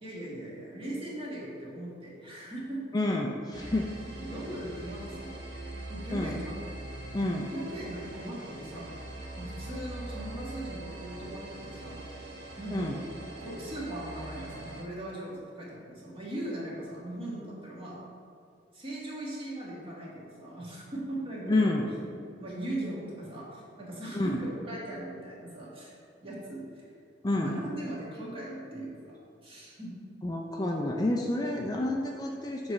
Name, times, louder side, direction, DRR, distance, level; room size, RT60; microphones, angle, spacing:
voice 1, 0.0-2.8 3.6-3.7 4.2-5.4 5.9-6.5 7.2-8.9 9.4-12.0 12.6-12.9 13.4-18.0 18.7-21.7 22.4-26.8 27.3-29.9, right 1 dB, 30° right, -6 dB, 1.6 m, -39 dB
voice 2, 2.9-3.8 6.1-6.4 7.1-7.5 12.7-13.0 21.5-21.9 24.1-24.4 27.2-27.6 30.2-32.7, left 1 dB, 20° left, 0 dB, 0.4 m, -29 dB
sound 1, 3.5-14.8, right 1 dB, 65° right, 1.0 m, -42 dB
7.0 x 3.2 x 5.6 m, 2.4 s
head